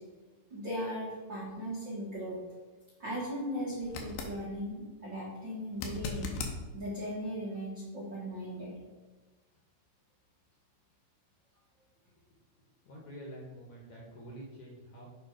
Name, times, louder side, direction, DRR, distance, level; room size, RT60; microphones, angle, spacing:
voice 1, 0.5-2.4 3.0-6.3 6.7-8.8, equal, 50° right, -7 dB, 1.3 m, -38 dB
sound 1, 3.8-4.4 5.7-6.6 9.6-9.7, left 4 dB, 75° left, 2.8 m, -38 dB
voice 2, 12.6-15.0, right 1 dB, 60° left, -2 dB, 2.3 m, -47 dB
7.5 x 5.1 x 5.0 m, 1.2 s
omnidirectional pair, 4.6 m